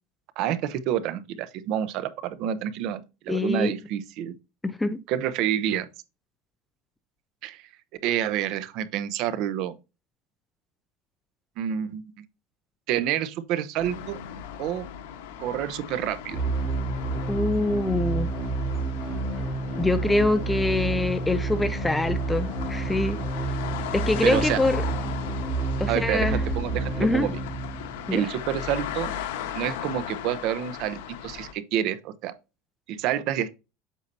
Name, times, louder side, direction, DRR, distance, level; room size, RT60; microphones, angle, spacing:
voice 1, 0.4-4.3 5.1-5.9 7.4-7.6 8.0-9.8 11.6-12.0 12.9-14.2 14.6-14.9 15.4-16.4 24.2-24.6 25.9-27.4 28.1-29.1 29.5-32.3 32.9-33.5, right 10 dB, 45° right, 0.7 m, -28 dB
voice 2, 3.3-3.7 4.6-5.0 17.3-18.3 19.8-23.2 23.9-24.8 25.8-26.4 27.0-27.3 28.1-28.3, left 2 dB, 5° left, 0.4 m, -24 dB
sound 1, 13.8-31.5, left 9 dB, 85° left, 1.2 m, -37 dB
sound 2, 16.3-28.3, right 3 dB, 10° right, 3.0 m, -29 dB
8.2 x 5.6 x 2.7 m
cardioid pair, 175°, 0 cm